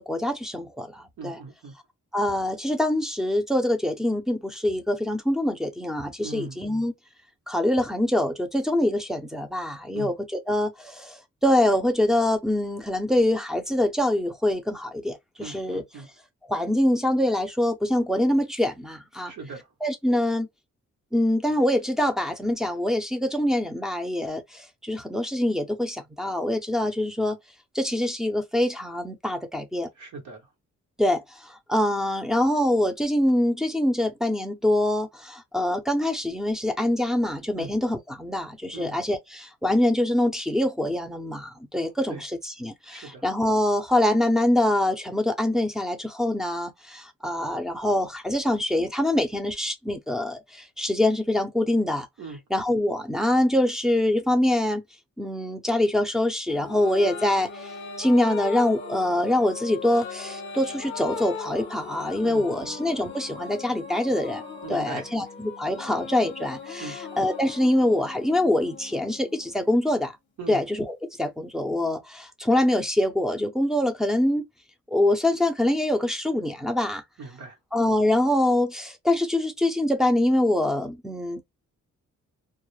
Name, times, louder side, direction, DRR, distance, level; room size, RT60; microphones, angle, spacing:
voice 1, 0.0-1.4 2.1-6.9 7.5-15.8 16.5-19.3 19.8-20.5 21.1-27.4 27.7-29.9 31.0-52.1 52.5-54.8 55.2-57.5 58.0-64.4 64.7-70.1 70.5-74.5 74.9-77.0 77.7-81.4, left 1 dB, ahead, 0.4 m, -24 dB
voice 2, 1.2-1.7 6.2-6.6 9.9-10.1 15.4-16.1 19.2-19.7 30.0-30.5 37.6-37.7 38.7-38.9 42.1-42.2 42.9-43.2 52.2-52.4 62.2-62.7 64.6-65.1 66.8-67.0 70.4-70.6 77.2-77.6, right 3 dB, 85° right, 1.1 m, -39 dB
sound 1, 56.5-70.1, left 4 dB, 40° left, 0.7 m, -38 dB
2.2 x 2.1 x 3.0 m
wide cardioid pair, 155°, 30 cm